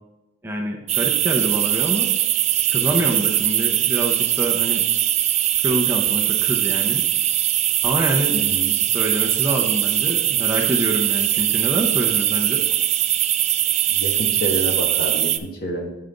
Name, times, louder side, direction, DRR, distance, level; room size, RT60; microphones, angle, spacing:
voice 1, 0.4-2.1 2.7-4.9 5.6-7.1 7.8-8.3 8.9-12.6, right 1 dB, 10° right, 0 dB, 0.7 m, -26 dB
sound 1, 0.9-15.4, right 12 dB, 30° right, 0.3 m, -21 dB
voice 2, 8.3-8.8 13.9-15.9, equal, 50° left, 1 dB, 1.4 m, -28 dB
8.0 x 5.6 x 3.8 m, 1.0 s
head